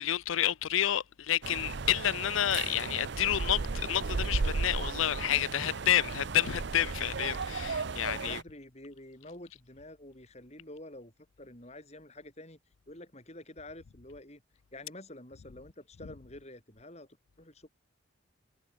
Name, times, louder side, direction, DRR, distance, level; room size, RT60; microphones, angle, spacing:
voice 1, 0.0-8.4, left 11 dB, 75° left, 0.5 m, -29 dB
sound 1, 1.4-8.4, right 4 dB, 55° right, 0.6 m, -35 dB
voice 2, 7.7-11.1 11.4-12.6 12.9-14.4 14.7-17.1 17.4-17.7, left 1 dB, 30° left, 5.8 m, -48 dB
head